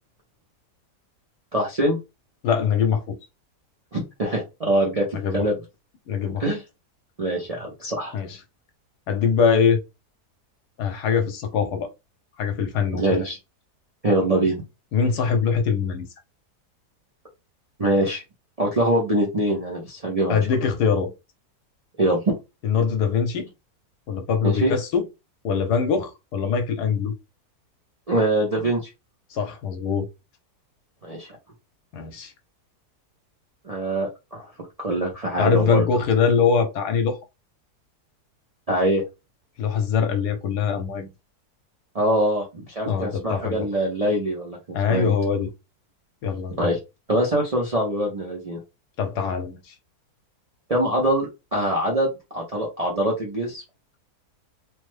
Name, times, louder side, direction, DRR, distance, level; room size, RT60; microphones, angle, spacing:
voice 1, 1.5-2.0 3.9-5.1 5.3-5.5 6.4-6.6 7.2-8.2 13.0-13.4 14.0-14.6 17.8-18.2 18.6-20.4 22.0-22.3 24.4-24.7 28.1-28.8 31.0-31.3 33.6-34.5 34.8-35.8 38.7-39.0 41.9-45.1 46.6-46.8 47.1-48.6 50.7-53.6, right 1 dB, 45° right, 0.5 m, -23 dB
voice 2, 2.4-3.2 5.1-5.5 6.1-6.4 8.1-8.4 9.1-9.8 10.8-11.9 12.4-13.3 14.9-16.1 20.3-21.1 22.6-23.5 24.1-25.1 25.4-27.1 29.3-30.1 31.9-32.3 35.4-37.2 39.6-41.1 42.9-43.7 44.7-45.5 46.2-46.8 49.0-49.6, left 6 dB, 80° left, 1.3 m, -23 dB
3.2 x 2.0 x 3.2 m
omnidirectional pair, 1.7 m